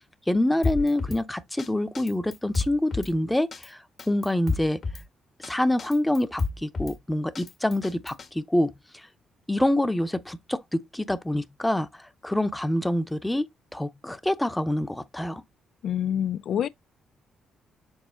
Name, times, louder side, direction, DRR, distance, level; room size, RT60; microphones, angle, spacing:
voice 1, 0.3-4.8 5.5-9.1 9.5-13.5 13.7-15.4, left 1 dB, 10° left, 0.7 m, -26 dB
Drum kit, 0.6-1.2 1.6-1.7 1.9-3.1 3.5-3.7 4.0-5.0 5.4-5.5 5.8-7.0 7.3-8.3, left 4 dB, 45° left, 1.2 m, -30 dB
voice 2, 15.8-16.7, left 9 dB, 65° left, 0.3 m, -26 dB
7.3 x 3.6 x 3.7 m
cardioid pair, 90°, 0 cm